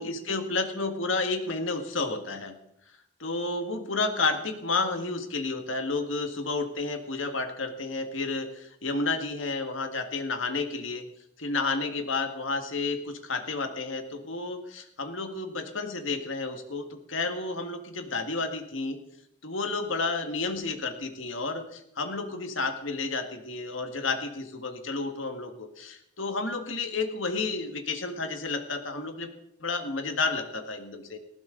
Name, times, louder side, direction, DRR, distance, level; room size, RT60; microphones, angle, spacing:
voice 1, 0.0-2.6 3.2-11.0 11.4-19.0 19.4-29.3 29.6-31.2, left 3 dB, 90° left, 7 dB, 1.8 m, -31 dB
19.0 x 15.0 x 3.9 m, 0.77 s
head